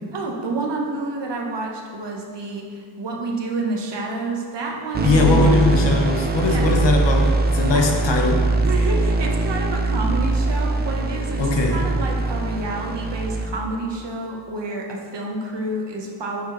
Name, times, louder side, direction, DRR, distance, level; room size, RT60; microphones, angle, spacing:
voice 1, 0.1-5.6 6.4-6.7 7.6-8.0 8.6-11.4 11.7-16.4, right 2 dB, 60° right, 0 dB, 1.0 m, -29 dB
sound 1, 4.9-13.5, right 3 dB, 25° right, 0.4 m, -22 dB
voice 2, 5.0-8.5 11.4-11.8, left 3 dB, 65° left, 2 dB, 0.9 m, -20 dB
7.3 x 3.8 x 3.7 m, 2.1 s
wide cardioid pair, 95°, 47 cm